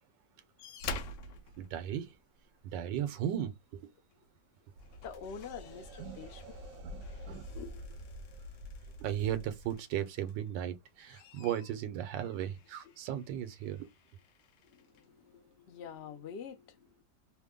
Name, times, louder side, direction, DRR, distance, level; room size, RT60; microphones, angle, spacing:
sound 1, 0.6-2.6 4.1-4.3 4.7-10.5 10.9-15.1 16.0-16.1, left 3 dB, 75° left, 1.2 m, -49 dB
voice 1, 1.6-2.1 2.6-3.8 6.0-6.2 6.9-7.5 9.0-13.9, right 10 dB, 85° right, 1.3 m, -36 dB
Cave Drone, 4.8-9.8, equal, 65° right, 1.0 m, -47 dB
voice 2, 5.0-6.4 7.5-7.8 14.6-17.0, left 7 dB, 60° left, 0.7 m, -46 dB
3.3 x 2.1 x 3.6 m
omnidirectional pair, 2.0 m